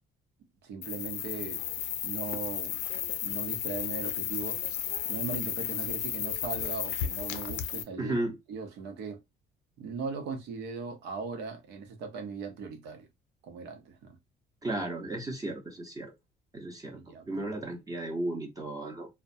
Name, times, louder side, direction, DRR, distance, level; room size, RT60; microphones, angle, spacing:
voice 1, 0.6-1.6 2.0-2.8 3.2-4.6 5.0-8.1 8.5-9.2 9.8-13.1 13.4-14.2 16.9-17.5, right 5 dB, 80° right, 0.9 m, -39 dB
sound 1, 0.8-7.8, left 10 dB, 85° left, 0.5 m, -34 dB
voice 2, 8.0-8.4 14.6-16.1 16.5-17.0 17.3-19.1, right 2 dB, 20° right, 0.8 m, -34 dB
2.2 x 2.2 x 2.6 m
cardioid pair, 110°, 17 cm